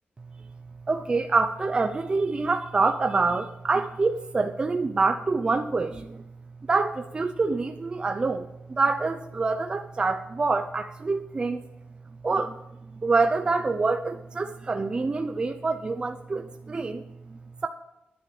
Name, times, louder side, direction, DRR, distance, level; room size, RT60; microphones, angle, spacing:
voice 1, 0.9-6.2 6.7-11.6 12.2-12.6 12.9-17.7, right 3 dB, 25° right, 6 dB, 0.6 m, -26 dB
10.5 x 9.5 x 6.7 m, 0.91 s
wide cardioid pair, 180°, 4 cm